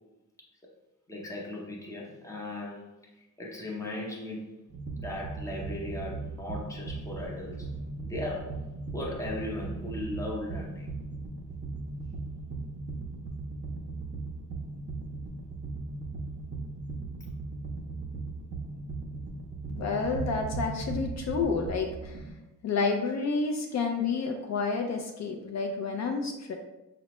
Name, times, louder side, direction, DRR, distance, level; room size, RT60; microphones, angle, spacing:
voice 1, 1.1-3.0 3.4-4.6 5.0-7.7 8.0-10.9, left 1 dB, 10° left, -2 dB, 0.6 m, -37 dB
sound 1, 4.7-22.3, right 3 dB, 35° right, 0.5 m, -38 dB
voice 2, 19.7-22.2 22.6-26.5, left 4 dB, 60° left, 3 dB, 0.4 m, -30 dB
5.4 x 2.0 x 2.9 m, 0.97 s
wide cardioid pair, 145°, 32 cm